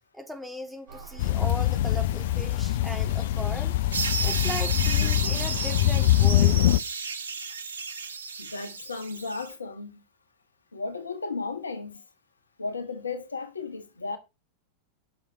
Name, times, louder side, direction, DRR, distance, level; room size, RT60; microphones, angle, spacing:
voice 1, 0.1-3.8 4.2-6.5, equal, 5° right, 3.3 m, -38 dB
sound 1, 0.9-5.9, right 4 dB, 50° right, 7.4 m, -46 dB
sound 2, 1.2-6.8, left 14 dB, 55° left, 0.5 m, -23 dB
sound 3, 3.9-9.5, right 5 dB, 70° right, 1.8 m, -33 dB
voice 2, 8.4-10.0 10.7-12.0 12.6-14.2, left 4 dB, 75° left, 1.6 m, -34 dB
10.0 x 6.8 x 6.0 m
figure-of-eight pair, 90°, 0 cm